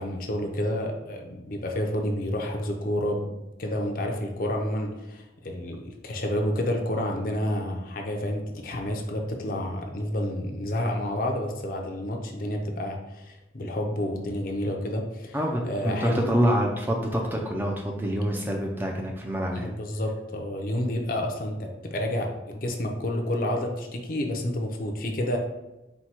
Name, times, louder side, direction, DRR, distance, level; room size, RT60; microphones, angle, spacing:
voice 1, 0.0-3.3 3.6-15.4 15.6-16.3 19.5-25.4, left 1 dB, 50° left, 2 dB, 0.5 m, -29 dB
voice 2, 15.3-19.7, equal, 10° right, 0 dB, 0.4 m, -26 dB
4.4 x 2.2 x 4.2 m, 1.0 s
head